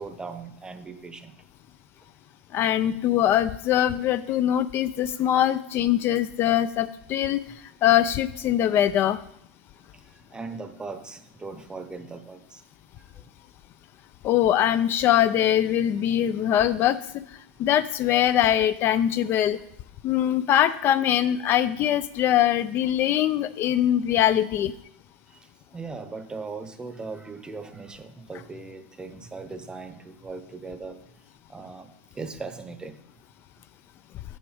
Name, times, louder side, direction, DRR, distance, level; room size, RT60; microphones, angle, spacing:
voice 1, 0.0-1.3 9.9-12.6 25.3-31.0 31.5-33.0, right 4 dB, 15° right, 10 dB, 0.8 m, -39 dB
voice 2, 2.5-7.4 7.8-9.2 14.2-17.2 17.6-19.6 20.0-24.7, left 11 dB, 40° left, 13 dB, 0.4 m, -22 dB
6.8 x 6.3 x 4.9 m, 0.75 s
hypercardioid pair, 110°, 6 cm